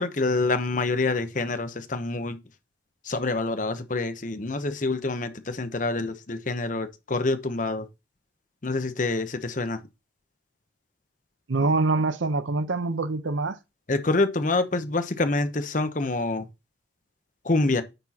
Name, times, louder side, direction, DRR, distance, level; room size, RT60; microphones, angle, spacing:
voice 1, 0.0-2.4 3.0-7.9 8.6-9.8 13.9-16.5 17.4-17.8, left 2 dB, 40° left, 0.8 m, -26 dB
voice 2, 11.5-13.6, right 3 dB, 75° right, 0.8 m, -25 dB
9.0 x 6.1 x 2.9 m
head